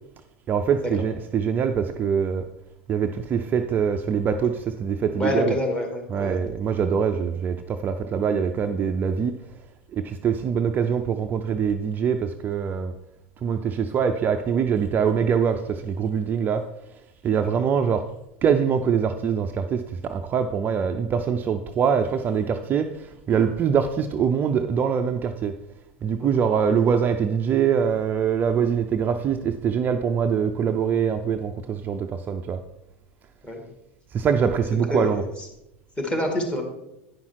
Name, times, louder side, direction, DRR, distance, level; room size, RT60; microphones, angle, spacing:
voice 1, 0.5-2.5 2.9-5.6 6.1-9.3 9.9-12.9 13.4-16.7 17.2-18.1 18.4-25.5 26.0-32.6 34.1-35.3, right 7 dB, 30° right, 6 dB, 0.5 m, -23 dB
voice 2, 5.1-6.4 17.6-17.7 26.2-26.3 33.4-33.6 34.9-35.2 36.0-36.6, left 1 dB, 15° left, 1 dB, 2.0 m, -26 dB
9.7 x 5.5 x 4.6 m, 0.88 s
figure-of-eight pair, 85°, 7 cm